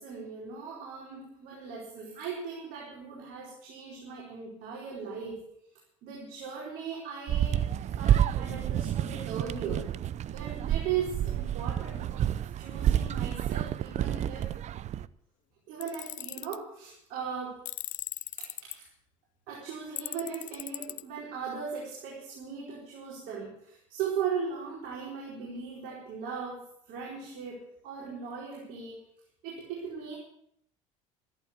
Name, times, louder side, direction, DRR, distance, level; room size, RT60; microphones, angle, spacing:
voice 1, 0.0-5.4 6.0-7.7 8.0-9.9 10.3-12.3 12.6-14.5 15.7-17.6 18.3-18.9 19.5-29.0 29.4-30.2, right 6 dB, 70° right, -3 dB, 4.6 m, -38 dB
sound 1, 7.3-15.1, right 11 dB, 45° right, 0.7 m, -29 dB
Tools, 15.8-16.6 17.6-18.7 20.0-21.0, left 14 dB, 55° left, 0.7 m, -38 dB
14.0 x 11.5 x 8.1 m, 0.71 s
supercardioid pair, 80°, 16 cm